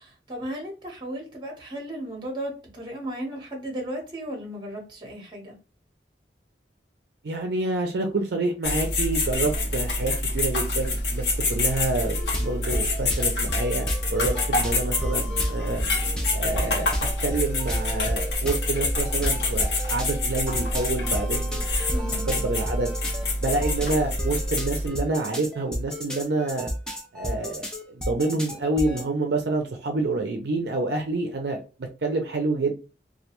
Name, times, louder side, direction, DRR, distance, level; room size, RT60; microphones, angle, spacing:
voice 1, 0.0-5.5 21.9-22.3, right 1 dB, 25° right, 0 dB, 0.9 m, -35 dB
voice 2, 7.2-15.8 16.3-16.9 17.2-21.6 21.9-22.9 23.4-26.7 27.1-32.7, right 2 dB, 65° right, 3 dB, 0.5 m, -28 dB
sound 1, 8.6-24.9, left 2 dB, 70° left, 0.9 m, -27 dB
sound 2, 12.0-29.0, equal, 5° left, 0.4 m, -33 dB
2.3 x 2.2 x 2.8 m, 0.33 s
head